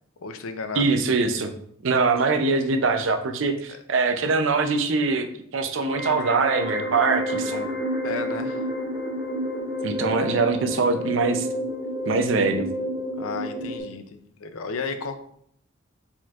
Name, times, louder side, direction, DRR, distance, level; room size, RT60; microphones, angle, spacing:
voice 1, 0.2-0.9 3.7-3.8 8.0-8.6 13.2-15.2, left 4 dB, 80° left, 7 dB, 0.5 m, -33 dB
voice 2, 0.7-1.5 1.8-7.7 9.8-11.5 12.1-12.7, right 4 dB, 65° right, 7 dB, 0.5 m, -23 dB
sound 1, 5.8-13.8, equal, 45° right, 1.4 m, -30 dB
4.3 x 4.3 x 2.4 m, 0.68 s
head